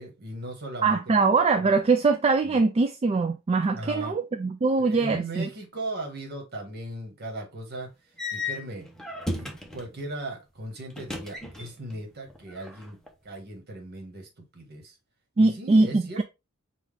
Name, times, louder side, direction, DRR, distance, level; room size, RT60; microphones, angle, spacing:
voice 1, 0.0-1.3 1.6-1.7 2.4-2.6 3.7-4.2 4.8-7.9 8.3-8.9 9.3-13.0 13.2-15.0 15.4-16.2, right 1 dB, 50° right, 1.5 m, -38 dB
voice 2, 0.8-5.4 15.4-16.2, right 3 dB, 30° right, 0.3 m, -22 dB
sound 1, 8.2-9.9 10.9-12.0 12.3-13.1, left 2 dB, ahead, 0.8 m, -35 dB
5.7 x 2.5 x 3.4 m
head